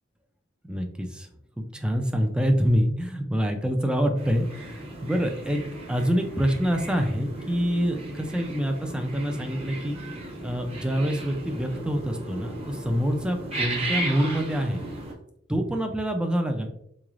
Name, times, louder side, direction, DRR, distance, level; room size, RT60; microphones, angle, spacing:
voice 1, 0.7-1.3 1.6-5.6 5.9-10.0 10.4-14.8 15.5-16.7, equal, 5° right, 4 dB, 0.3 m, -26 dB
sound 1, 4.2-15.1, right 2 dB, 35° right, 0.9 m, -36 dB
3.7 x 3.1 x 2.4 m, 0.73 s
head